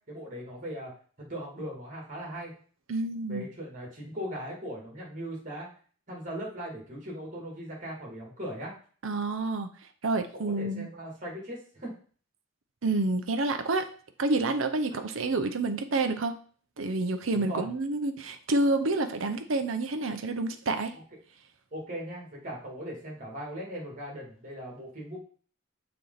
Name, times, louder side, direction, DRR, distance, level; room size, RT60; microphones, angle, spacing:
voice 1, 0.1-0.9 1.2-2.5 3.3-5.7 6.1-8.7 10.3-11.9 14.9-15.0 17.3-17.7 20.9-21.0 21.7-25.2, equal, 35° right, -2 dB, 2.4 m, -39 dB
voice 2, 2.9-3.5 9.0-9.7 10.0-10.9 12.8-13.9 14.2-16.4 16.8-20.9, right 2 dB, 70° right, 8 dB, 0.7 m, -28 dB
6.8 x 4.5 x 4.0 m, 0.43 s
head